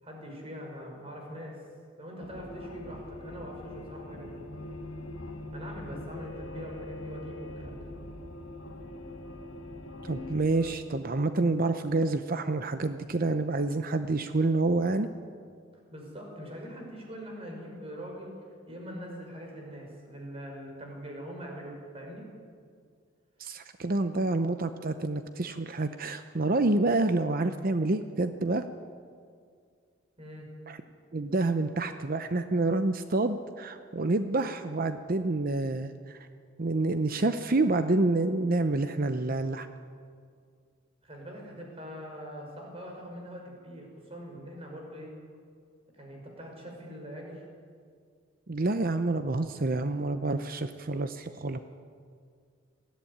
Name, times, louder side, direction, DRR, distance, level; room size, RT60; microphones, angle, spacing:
voice 1, 0.0-1.6 2.0-4.4 5.5-7.9 15.9-18.3 18.7-22.3 30.2-30.5 41.0-45.1 45.9-47.4, equal, 30° right, 0 dB, 5.7 m, -43 dB
sound 1, 2.2-10.7, left 1 dB, 85° left, 1.9 m, -42 dB
voice 2, 10.0-15.1 23.4-28.6 30.7-30.8 31.1-36.2 36.6-39.7 48.5-51.6, right 2 dB, 45° right, 9 dB, 0.7 m, -28 dB
20.0 x 15.0 x 9.8 m, 2.1 s
head